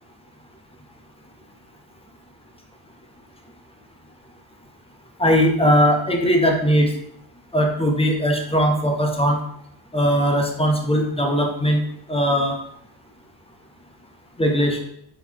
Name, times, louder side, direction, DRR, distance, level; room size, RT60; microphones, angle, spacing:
voice 1, 5.2-6.9 7.5-9.4 9.9-11.8 12.1-12.6 14.4-14.8, equal, 10° left, 1 dB, 1.0 m, -19 dB
4.3 x 3.9 x 3.0 m, 0.73 s
supercardioid pair, 55°, 50 cm